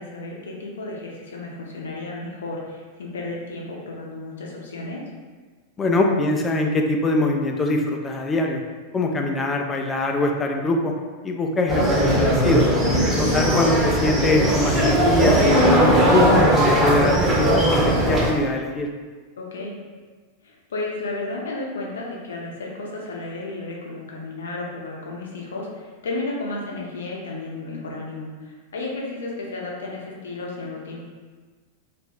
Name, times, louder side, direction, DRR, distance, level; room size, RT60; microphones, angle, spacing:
voice 1, 0.0-5.0 12.9-13.3 19.4-19.8 20.4-31.0, left 2 dB, 65° left, -3 dB, 0.6 m, -33 dB
voice 2, 5.8-8.6 8.9-10.9 11.2-12.6 13.2-18.9, left 2 dB, 20° left, 2 dB, 0.3 m, -23 dB
sound 1, 11.7-18.3, equal, 15° right, 0.7 m, -18 dB
2.4 x 2.2 x 3.4 m, 1.4 s
figure-of-eight pair, 90°, 0 cm